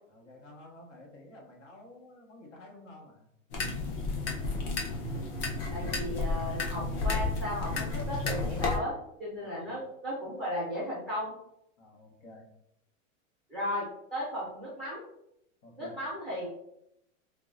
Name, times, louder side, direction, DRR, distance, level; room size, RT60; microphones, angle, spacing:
voice 1, 0.1-3.3 9.4-9.8 11.8-12.5 15.6-16.0, left 1 dB, 65° left, 1 dB, 1.2 m, -52 dB
sound 1, 3.5-8.8, left 3 dB, 45° left, 0.8 m, -32 dB
voice 2, 5.7-11.3 13.5-15.0 15.8-16.5, left 1 dB, ahead, -8 dB, 0.4 m, -35 dB
4.6 x 2.2 x 2.4 m, 0.77 s
supercardioid pair, 160°, 40 cm